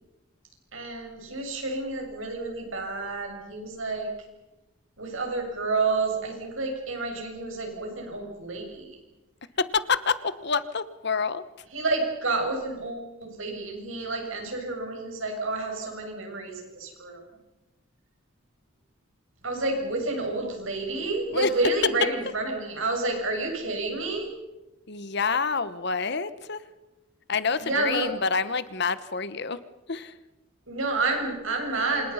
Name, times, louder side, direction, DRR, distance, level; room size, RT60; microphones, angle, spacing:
voice 1, 0.7-4.1 5.0-9.0 11.7-17.2 19.4-24.3 27.6-28.1 30.7-32.1, right 3 dB, 70° right, 2 dB, 7.3 m, -29 dB
voice 2, 9.6-11.4 21.3-21.7 22.2-22.3 24.9-26.6 27.3-29.6 29.9-30.1, left 5 dB, 55° left, 14 dB, 1.1 m, -27 dB
28.0 x 27.0 x 5.7 m, 1.0 s
head